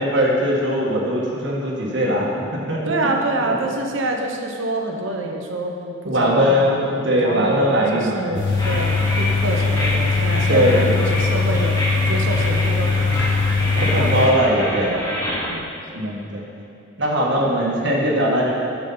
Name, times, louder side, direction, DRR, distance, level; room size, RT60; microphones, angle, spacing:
voice 1, 0.0-2.3 2.7-3.0 6.1-8.5 8.7-8.8 10.5-10.9 13.8-14.9 16.0-16.4 17.0-18.5, equal, 65° right, -4 dB, 1.7 m, -20 dB
voice 2, 2.9-11.7 12.1-13.1 13.6-14.4 14.8-15.7 16.0-16.1 17.3-17.5, right 2 dB, 80° right, 2 dB, 1.0 m, -27 dB
sound 1, 8.3-14.3, left 4 dB, 65° left, 1.6 m, -21 dB
sound 2, 8.6-15.5, equal, 15° left, 1.2 m, -27 dB
9.8 x 7.3 x 4.0 m, 2.8 s
head